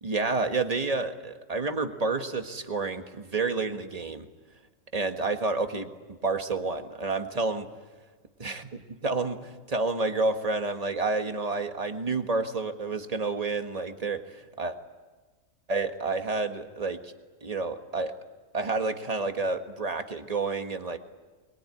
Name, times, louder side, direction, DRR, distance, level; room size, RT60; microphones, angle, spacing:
voice 1, 0.0-4.3 4.9-7.7 8.4-8.7 9.0-14.8 15.7-17.1 17.4-18.1 18.5-21.0, right 3 dB, 30° right, 6 dB, 1.6 m, -29 dB
24.5 x 22.0 x 9.8 m, 1.3 s
omnidirectional pair, 1.3 m